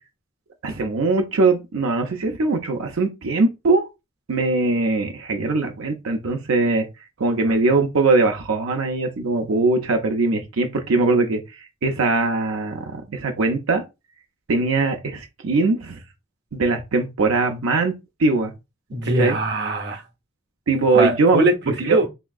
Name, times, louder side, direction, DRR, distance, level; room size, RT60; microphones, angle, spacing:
voice 1, 0.6-3.8 4.3-6.9 7.2-11.4 11.8-13.8 14.5-16.0 16.5-17.9 18.2-18.5 19.2-19.4 20.7-21.4 21.8-22.0, right 3 dB, 90° right, 0.5 m, -21 dB
voice 2, 18.9-20.0 20.9-22.1, right 2 dB, 55° right, 0.8 m, -22 dB
3.4 x 2.8 x 2.3 m
head